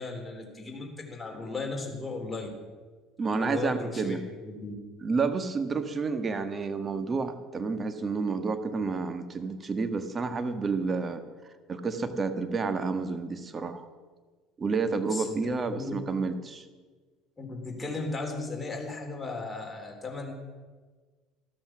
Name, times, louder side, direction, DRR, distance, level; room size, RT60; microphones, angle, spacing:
voice 1, 0.0-2.5 3.2-4.2 4.4-4.7 15.1-15.4 15.7-15.9 17.4-20.3, left 3 dB, 15° left, 0 dB, 3.6 m, -36 dB
voice 2, 3.2-4.2 5.0-11.2 11.7-13.9 14.6-16.6, right 4 dB, 30° right, 9 dB, 1.6 m, -30 dB
13.5 x 13.5 x 6.2 m, 1.4 s
hypercardioid pair, 65°, 0 cm